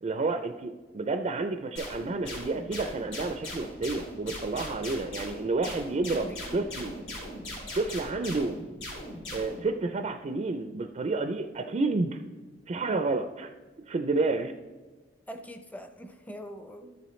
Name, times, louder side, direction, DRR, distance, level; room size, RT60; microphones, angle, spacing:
voice 1, 0.0-6.9 7.7-8.6 9.3-12.2 12.7-13.5 13.9-14.5, right 3 dB, 35° right, 7 dB, 0.4 m, -30 dB
sound 1, 1.8-9.6, left 1 dB, 85° left, 3.2 m, -39 dB
voice 2, 6.1-6.6 15.3-17.0, equal, 10° left, 7 dB, 0.6 m, -43 dB
13.0 x 7.0 x 3.1 m, 1.3 s
head